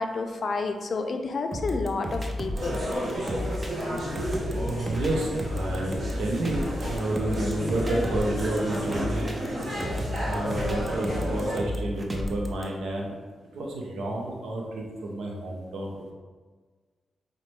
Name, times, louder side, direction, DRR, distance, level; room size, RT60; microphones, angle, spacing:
voice 1, 0.0-2.8, left 3 dB, 55° left, 5 dB, 0.4 m, -30 dB
sound 1, 1.5-12.6, left 1 dB, 25° right, 0.6 m, -32 dB
sound 2, 2.6-11.6, equal, 45° right, 1.1 m, -32 dB
voice 2, 4.6-9.3 9.7-9.8 10.2-13.2 13.5-16.1, right 1 dB, 80° right, -1 dB, 0.5 m, -30 dB
5.0 x 2.1 x 3.1 m, 1.4 s
supercardioid pair, 50°, 0 cm